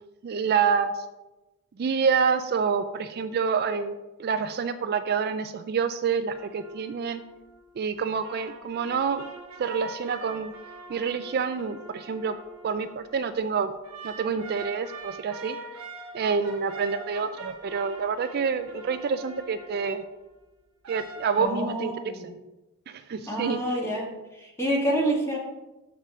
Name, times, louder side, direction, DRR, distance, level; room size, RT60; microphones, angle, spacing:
voice 1, 0.2-0.9 1.8-3.9 4.2-7.2 7.8-9.3 9.6-10.5 10.9-12.4 12.6-13.7 14.0-15.6 16.1-20.0 20.9-21.9 22.2-22.3 22.9-23.7, right 6 dB, 45° right, 9 dB, 0.4 m, -27 dB
sound 1, 6.3-7.6 8.1-13.2 13.8-20.0 20.8-21.4, right 3 dB, 85° right, 1.2 m, -43 dB
voice 2, 21.4-22.3 23.3-24.1 24.4-25.4, right 1 dB, 15° left, -2 dB, 1.7 m, -27 dB
6.7 x 5.7 x 4.9 m, 1.0 s
head